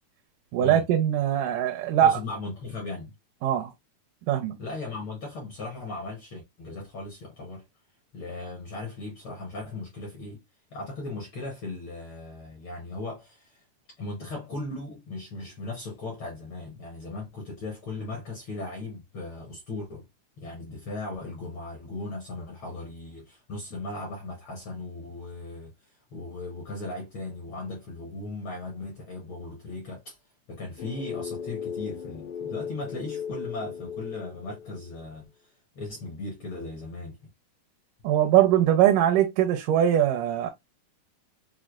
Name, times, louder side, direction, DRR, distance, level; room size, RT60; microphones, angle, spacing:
voice 1, 0.5-2.2 3.4-3.7 4.3-4.6 38.0-40.5, right 11 dB, 85° right, 2.2 m, -21 dB
voice 2, 2.0-3.1 4.6-7.6 8.1-10.4 10.7-13.6 14.0-20.1 20.4-30.2 30.5-37.2, left 2 dB, 70° left, 1.2 m, -37 dB
sound 1, 30.8-35.0, left 7 dB, 85° left, 1.6 m, -37 dB
6.1 x 2.1 x 2.3 m
omnidirectional pair, 3.6 m